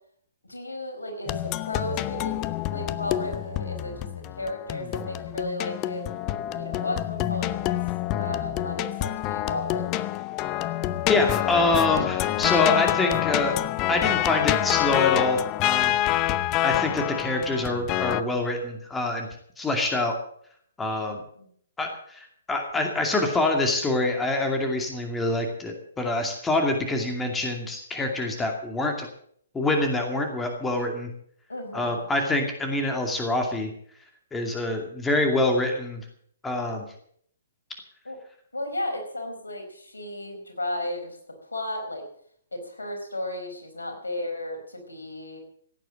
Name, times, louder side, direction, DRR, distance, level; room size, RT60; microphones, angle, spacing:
voice 1, 0.5-2.4 2.7-4.1 4.4-6.2 6.5-7.7 8.2-10.1 21.4-21.5 31.5-32.0 38.0-38.2 38.5-41.2 41.4-42.0 42.5-45.4, left 1 dB, 80° left, 4 dB, 4.6 m, -34 dB
sound 1, 1.3-18.2, left 14 dB, 25° left, 0.6 m, -27 dB
voice 2, 11.1-13.6 13.9-16.0 16.6-19.3 19.6-20.1 20.8-21.2 21.8-29.1 29.5-31.1 31.7-33.7 34.3-36.0 36.4-36.8, left 2 dB, 10° left, 3 dB, 2.4 m, -25 dB
16.5 x 9.2 x 7.7 m, 0.63 s
figure-of-eight pair, 125°, 0 cm